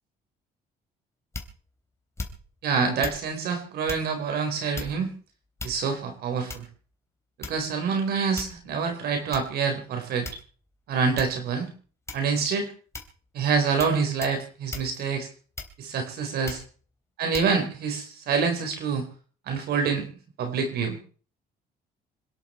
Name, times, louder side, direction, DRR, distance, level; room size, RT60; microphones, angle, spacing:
sound 1, 1.3-1.7 2.2-2.6 3.0-3.3 3.9-4.1 4.7-5.1 5.6-6.0 6.5-6.8 7.4-7.8 8.4-8.7 9.3-9.5 10.2-10.7 11.2-11.4 12.1-12.4 12.9-13.2 13.8-14.0 14.2-14.4 14.7-14.9 15.6-16.0 16.5-16.7 17.3-17.5, left 3 dB, 15° left, 3.5 m, -37 dB
voice 1, 2.6-5.1 5.6-6.6 7.5-10.3 10.9-11.7 12.1-12.7 13.3-15.3 15.8-16.6 17.2-19.1 19.5-20.1 20.4-21.0, right 5 dB, 70° right, 5 dB, 4.5 m, -26 dB
27.0 x 11.0 x 4.5 m, 0.42 s
cardioid pair, 110°, 17 cm